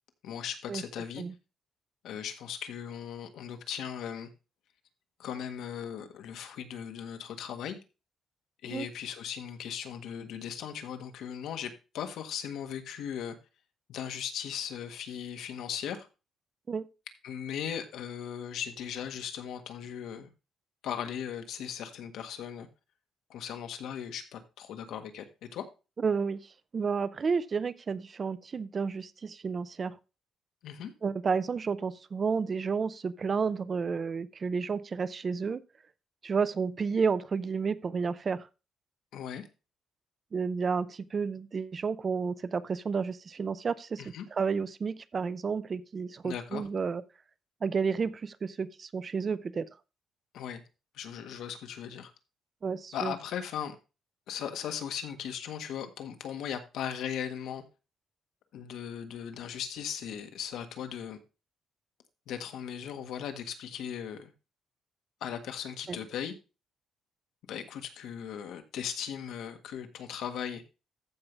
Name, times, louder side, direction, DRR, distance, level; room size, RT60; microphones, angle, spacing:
voice 1, 0.2-1.2 2.0-4.3 5.2-7.8 8.6-13.4 13.9-16.1 17.2-20.3 20.8-22.7 23.3-25.7 30.6-30.9 39.1-39.5 44.0-44.2 46.2-46.7 50.3-50.6 50.9-52.1 52.9-53.7 54.3-57.6 58.5-61.2 62.3-64.3 65.2-66.3 67.5-70.6, left 8 dB, 80° left, 1.6 m, -38 dB
voice 2, 26.0-26.4 26.7-30.0 31.0-35.6 36.2-38.5 40.3-44.0 44.4-47.0 47.6-49.7 52.6-53.1 65.9-66.0, right 5 dB, 30° right, 0.6 m, -31 dB
14.5 x 5.4 x 3.3 m
cardioid pair, 165°, 0 cm